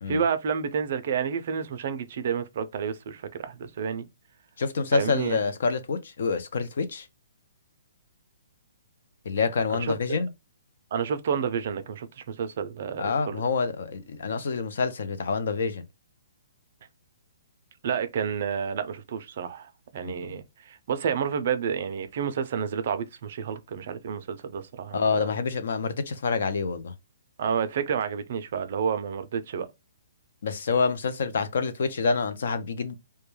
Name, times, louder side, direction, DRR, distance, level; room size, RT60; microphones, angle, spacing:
voice 1, 0.1-4.1 4.9-5.4 9.7-10.2 10.9-13.4 17.8-25.3 27.4-29.7, right 7 dB, 45° right, 0.4 m, -30 dB
voice 2, 4.6-7.1 9.3-10.3 13.0-15.8 20.0-20.4 24.9-26.9 30.4-33.0, left 5 dB, 60° left, 0.5 m, -27 dB
2.2 x 2.2 x 3.1 m
hypercardioid pair, 170°, 0 cm